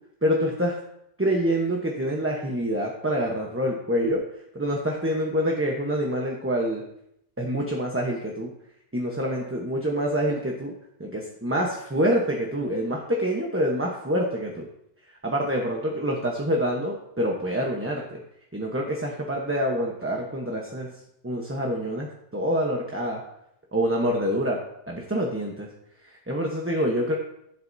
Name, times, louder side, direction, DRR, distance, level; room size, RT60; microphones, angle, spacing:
voice 1, 0.2-0.8 1.2-4.2 4.5-6.8 7.4-8.5 8.9-10.7 11.0-14.7 15.2-18.2 18.5-20.9 21.2-23.2 23.7-24.6 24.9-25.7 26.1-27.2, equal, 10° right, -1 dB, 1.0 m, -26 dB
14.5 x 7.8 x 2.7 m, 0.78 s
omnidirectional pair, 1.2 m